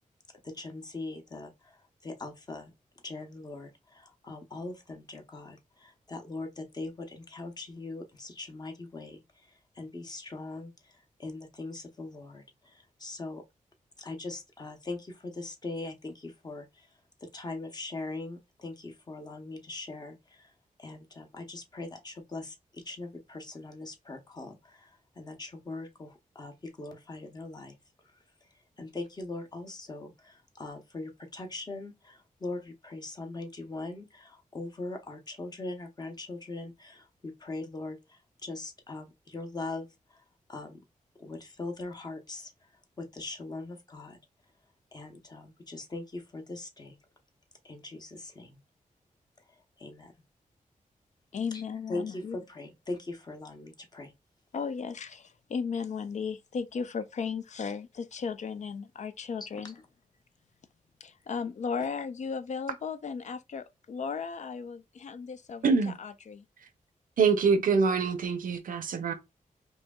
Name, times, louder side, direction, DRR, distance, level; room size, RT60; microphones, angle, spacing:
voice 1, 0.4-2.7 3.0-13.4 14.0-16.9 17.2-20.5 20.8-27.8 28.8-40.2 40.5-40.8 41.2-42.5 43.0-44.2 44.9-47.0 47.6-48.6 49.8-50.1 51.5-51.6 51.9-54.1 59.5-59.7, left 2 dB, 30° left, 0.8 m, -41 dB
voice 2, 51.3-52.4 54.5-59.8 61.0-66.5, left 5 dB, 55° left, 0.4 m, -35 dB
voice 3, 65.6-66.0 67.2-69.1, right 5 dB, 80° right, 0.6 m, -25 dB
4.7 x 2.7 x 2.3 m
wide cardioid pair, 115°, 14 cm